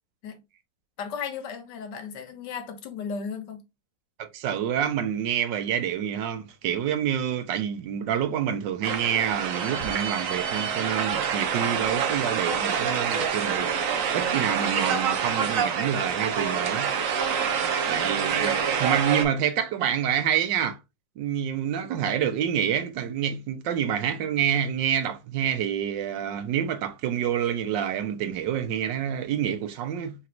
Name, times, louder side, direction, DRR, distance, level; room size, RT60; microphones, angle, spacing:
voice 1, 1.0-3.6, left 6 dB, 80° left, 1.5 m, -35 dB
voice 2, 4.2-13.7 14.1-16.9 17.9-20.8 21.2-30.1, right 9 dB, 85° right, 1.4 m, -27 dB
sound 1, 8.8-19.2, right 7 dB, 60° right, 1.0 m, -26 dB
4.4 x 4.0 x 2.4 m
omnidirectional pair, 1.9 m